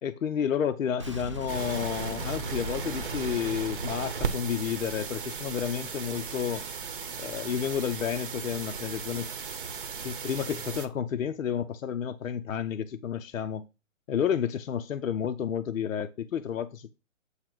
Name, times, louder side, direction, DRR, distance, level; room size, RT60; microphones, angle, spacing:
voice 1, 0.0-6.6 7.2-9.3 10.0-13.7 14.1-16.9, left 8 dB, 80° left, 0.7 m, -31 dB
Boom, 1.0-5.9, equal, 25° right, 0.4 m, -40 dB
sound 1, 1.5-10.9, right 6 dB, 40° right, 0.8 m, -36 dB
8.0 x 2.9 x 6.0 m
hypercardioid pair, 165°, 40 cm